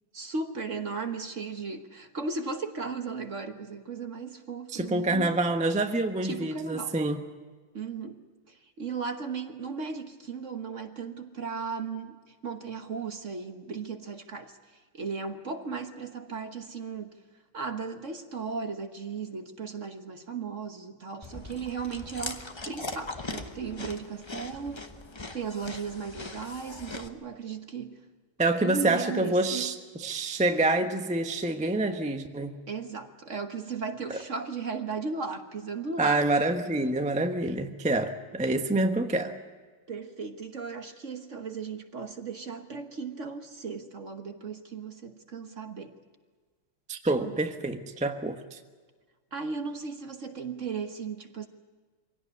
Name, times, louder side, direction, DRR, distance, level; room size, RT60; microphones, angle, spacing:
voice 1, 0.1-5.3 6.2-7.0 7.7-8.2 8.5-17.2 17.5-24.9 25.3-28.0 28.6-29.7 32.7-36.2 38.7-38.8 39.9-46.0 47.2-47.4 49.3-51.5, right 5 dB, 40° right, 6 dB, 1.3 m, -36 dB
voice 2, 4.7-7.2 28.4-32.6 36.0-39.3 46.9-48.6, right 2 dB, 5° right, 5 dB, 0.6 m, -27 dB
Chewing mastication, 21.2-27.1, left 2 dB, 35° left, 0.4 m, -40 dB
24.0 x 17.5 x 9.6 m, 1.4 s
omnidirectional pair, 2.3 m